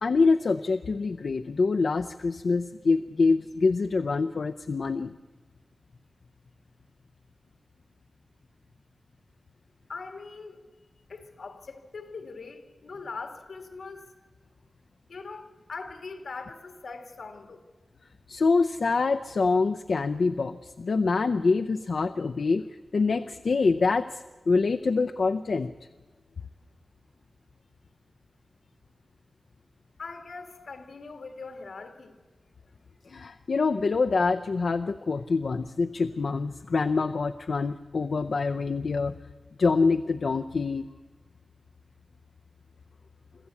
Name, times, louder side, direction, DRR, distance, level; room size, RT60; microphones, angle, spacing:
voice 1, 0.0-5.1 18.3-22.6 22.9-25.7 33.1-39.1 39.6-40.8, left 4 dB, 70° left, 7 dB, 0.5 m, -25 dB
voice 2, 9.9-10.6 11.1-14.1 15.1-17.6 30.0-32.2, left 4 dB, 85° left, 5 dB, 2.1 m, -41 dB
26.0 x 14.0 x 8.3 m, 1.3 s
wide cardioid pair, 115°, 0 cm